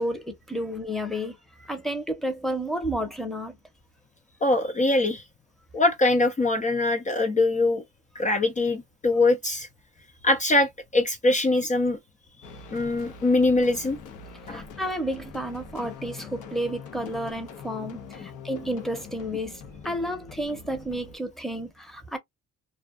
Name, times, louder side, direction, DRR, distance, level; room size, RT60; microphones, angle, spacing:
voice 1, 0.0-3.6 14.5-22.2, equal, ahead, 0.8 m, -31 dB
voice 2, 4.4-5.2 5.7-7.8 8.2-9.7 10.2-12.0 12.7-14.0 14.5-14.6, left 2 dB, 25° left, 0.5 m, -23 dB
sound 1, 12.4-21.2, left 5 dB, 80° left, 0.7 m, -43 dB
2.3 x 2.3 x 2.3 m
cardioid pair, 90°, 30 cm